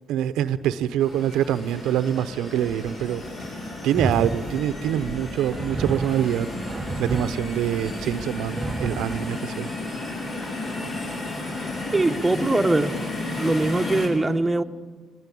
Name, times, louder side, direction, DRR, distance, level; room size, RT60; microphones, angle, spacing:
voice 1, 0.1-3.2 3.8-6.5 7.0-9.7, right 10 dB, 80° right, 0.7 m, -25 dB
sound 1, 1.0-14.1, left 2 dB, 55° left, 6.9 m, -33 dB
sound 2, 4.0-9.3, right 3 dB, 35° right, 0.6 m, -32 dB
voice 2, 11.9-12.9 13.3-14.6, right 2 dB, 15° right, 1.0 m, -22 dB
21.0 x 20.5 x 8.5 m
supercardioid pair, 70°, 0 cm